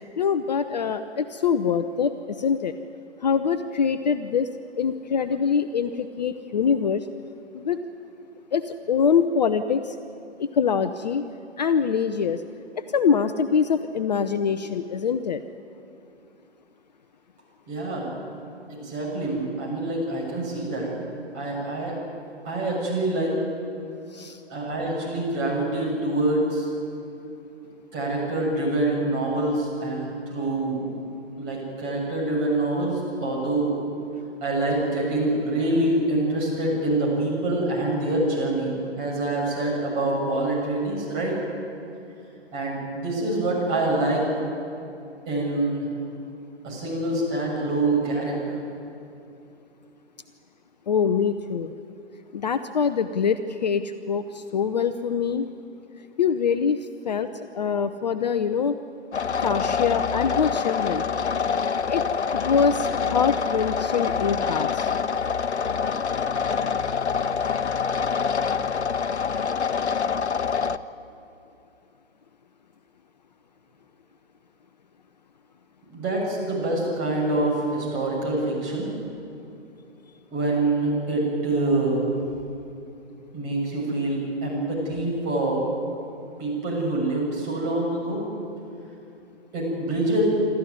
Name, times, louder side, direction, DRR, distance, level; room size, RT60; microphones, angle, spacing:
voice 1, 0.2-2.7 3.2-4.5 4.8-7.1 7.5-7.8 8.5-10.0 10.4-11.2 11.6-12.4 12.7-15.4 24.1-24.4 50.9-51.7 52.3-55.5 56.2-58.8 59.4-61.0 61.9-62.0 62.3-64.9, left 6 dB, 40° left, 10 dB, 0.6 m, -24 dB
voice 2, 17.7-18.1 18.7-20.9 21.3-22.0 22.4-23.3 24.5-26.7 27.9-30.9 31.4-33.7 34.4-41.3 42.5-44.3 45.2-45.9 46.6-48.6 75.9-78.9 80.3-82.1 83.3-85.6 86.4-88.2 89.5-90.2, right 2 dB, 25° right, -3 dB, 6.8 m, -25 dB
sound 1, 59.1-70.8, left 6 dB, 70° left, 0.8 m, -26 dB
26.5 x 13.5 x 9.5 m, 2.7 s
figure-of-eight pair, 135°, 35 cm